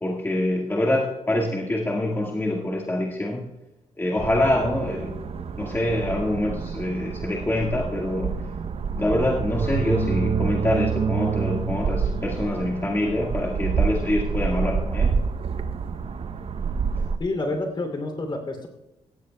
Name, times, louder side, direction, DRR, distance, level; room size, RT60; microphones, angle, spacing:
voice 1, 0.0-3.4 4.0-5.2 5.6-8.4 9.0-15.2 17.0-17.1, left 1 dB, 20° left, -2 dB, 1.7 m, -25 dB
sound 1, 4.2-17.2, right 5 dB, 55° right, 0.7 m, -27 dB
voice 2, 17.2-18.7, left 2 dB, 40° left, 5 dB, 2.9 m, -28 dB
17.5 x 15.0 x 2.3 m, 0.93 s
cardioid pair, 95°, 12 cm